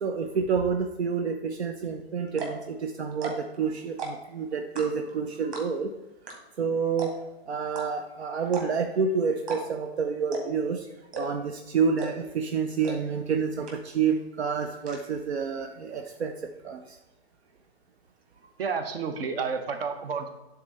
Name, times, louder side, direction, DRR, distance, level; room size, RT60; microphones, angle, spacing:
voice 1, 0.0-5.9 6.6-7.1 7.5-10.9 11.2-16.3 16.6-16.8, right 6 dB, 85° right, 5 dB, 0.7 m, -28 dB
sound 1, 1.8-1.9 2.3-2.6 3.1-3.5 3.9-4.3 4.7-5.1 5.5-5.9 6.3-6.4 6.6-6.7 7.0-7.3 7.7-7.9 8.5-8.9 9.4-9.9 10.3-10.6 11.1-11.5 12.0-12.3 12.8-12.9 13.3-13.4 13.7-14.1 14.4-15.0, right 3 dB, 25° right, 1.7 m, -36 dB
voice 2, 18.6-20.3, right 5 dB, 65° right, 7 dB, 1.1 m, -30 dB
9.4 x 3.9 x 4.1 m, 1.0 s
hypercardioid pair, 125°, 31 cm